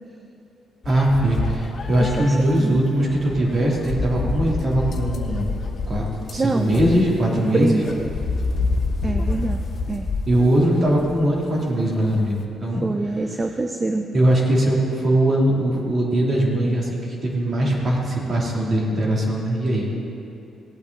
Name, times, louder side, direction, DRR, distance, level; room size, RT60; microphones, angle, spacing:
sound 1, 0.8-12.4, left 3 dB, 50° left, 1.1 m, -28 dB
voice 1, 0.8-5.5 5.9-6.1 6.3-7.7 10.2-12.8 14.1-20.0, right 1 dB, 40° right, -3 dB, 2.9 m, -21 dB
voice 2, 2.0-2.8 6.4-6.7 7.5-8.2 9.0-9.6 9.9-10.1 12.8-14.1, right 3 dB, 25° right, 6 dB, 0.6 m, -25 dB
17.5 x 8.6 x 4.0 m, 2.8 s
cardioid pair, 90°, 0 cm